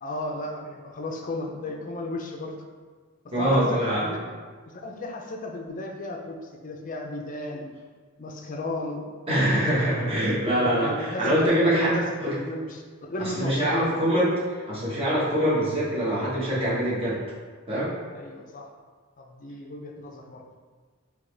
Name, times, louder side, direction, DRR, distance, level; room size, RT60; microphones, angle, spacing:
voice 1, 0.0-2.6 3.2-4.2 4.7-7.7 8.2-9.1 9.9-10.3 10.6-14.0 18.1-18.7 19.2-20.4, left 2 dB, 40° left, 2 dB, 0.5 m, -34 dB
voice 2, 3.3-4.1 9.3-12.3 13.2-17.2 17.7-17.9, right 1 dB, 30° right, -8 dB, 1.2 m, -24 dB
3.9 x 3.0 x 3.3 m, 1.5 s
head